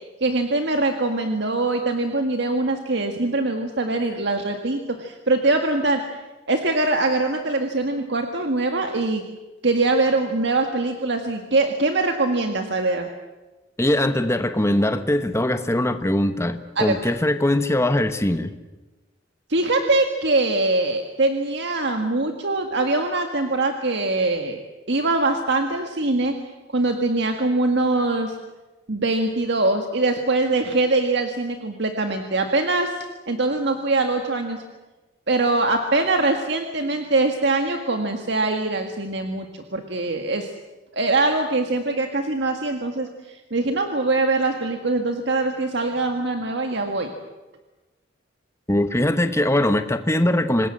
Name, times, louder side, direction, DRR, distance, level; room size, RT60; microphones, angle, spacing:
voice 1, 0.2-6.0 6.5-9.2 9.6-13.1 16.8-17.1 19.5-24.6 24.9-26.3 26.7-28.4 28.9-32.9 33.3-34.6 35.3-40.5 40.9-47.1, right 2 dB, 65° right, 5 dB, 1.8 m, -23 dB
voice 2, 13.8-18.5 48.7-50.7, left 1 dB, 15° left, 9 dB, 1.1 m, -21 dB
26.5 x 20.0 x 7.8 m, 1.1 s
head